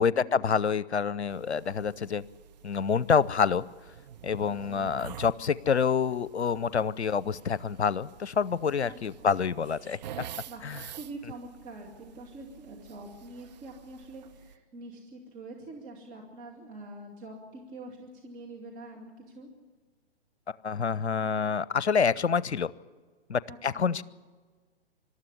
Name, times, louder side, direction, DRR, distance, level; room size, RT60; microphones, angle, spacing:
voice 1, 0.0-2.2 2.6-3.6 4.2-10.0 10.6-10.8 20.6-22.7 23.3-24.0, left 6 dB, 80° left, 21 dB, 0.7 m, -27 dB
sound 1, 1.3-14.5, right 9 dB, 40° right, 0.9 m, -48 dB
voice 2, 4.4-5.0 8.8-9.3 10.5-10.6 10.9-19.5 23.5-23.9, right 2 dB, 25° right, -1 dB, 2.5 m, -45 dB
26.0 x 13.0 x 10.0 m, 1.5 s
figure-of-eight pair, 125°, 33 cm